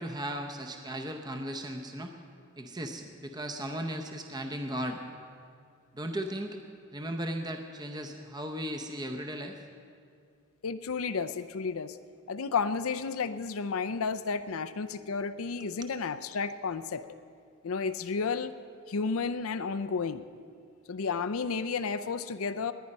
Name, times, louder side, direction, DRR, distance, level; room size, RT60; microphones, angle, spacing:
voice 1, 0.0-2.1 2.6-5.0 5.9-6.6 6.9-9.6 15.6-15.7, right 1 dB, 20° right, 5 dB, 0.7 m, -36 dB
voice 2, 10.6-12.0 12.3-17.1 17.6-18.5 18.9-20.2 20.9-22.7, left 5 dB, 75° left, 11 dB, 0.5 m, -32 dB
19.5 x 10.0 x 5.3 m, 2.3 s
head